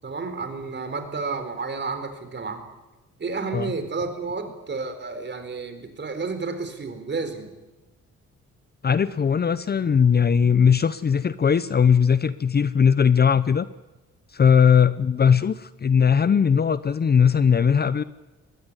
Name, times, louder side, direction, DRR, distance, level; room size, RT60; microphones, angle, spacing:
voice 1, 0.0-2.6 3.2-7.5, right 4 dB, 35° right, 9 dB, 4.0 m, -31 dB
voice 2, 8.8-13.7 14.3-18.0, left 7 dB, 35° left, 16 dB, 0.7 m, -19 dB
21.5 x 16.5 x 9.7 m, 1.1 s
cardioid pair, 90°, 30 cm